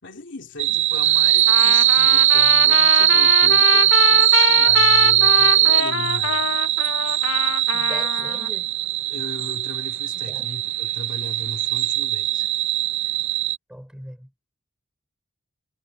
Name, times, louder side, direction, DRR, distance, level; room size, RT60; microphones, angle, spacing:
voice 1, 0.0-6.5 9.1-12.5, left 2 dB, 60° left, 3.2 m, -37 dB
sound 1, 0.6-13.6, right 13 dB, 60° right, 0.5 m, -19 dB
Trumpet, 1.5-8.5, left 7 dB, 75° left, 0.7 m, -24 dB
voice 2, 7.7-8.7 10.1-10.5 13.7-14.3, equal, 5° right, 4.3 m, -40 dB
head